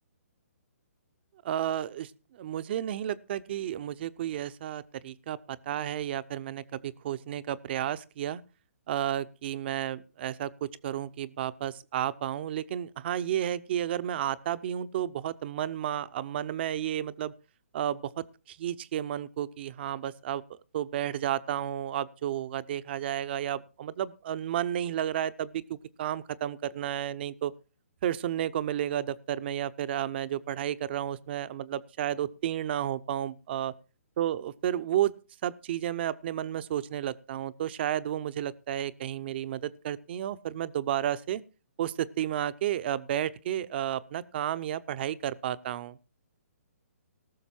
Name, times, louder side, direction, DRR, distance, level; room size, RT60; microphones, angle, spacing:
voice 1, 1.4-8.4 8.9-17.3 17.7-27.5 28.0-33.7 34.2-35.1 35.4-41.4 41.8-46.0, right 11 dB, 45° right, 15 dB, 0.7 m, -32 dB
18.5 x 6.6 x 4.5 m, 0.33 s
hypercardioid pair, 140°, 8 cm